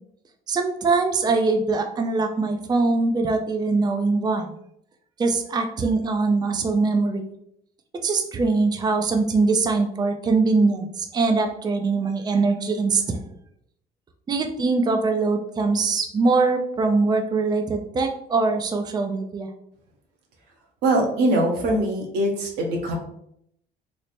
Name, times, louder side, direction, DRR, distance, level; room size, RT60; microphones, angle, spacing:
voice 1, 0.5-4.5 5.2-7.2 8.0-13.2 14.3-19.5, right 3 dB, 25° right, 4 dB, 0.4 m, -22 dB
voice 2, 20.8-22.9, right 1 dB, 90° right, 1 dB, 0.9 m, -22 dB
3.2 x 2.0 x 4.1 m, 0.73 s
cardioid pair, 110°, 17 cm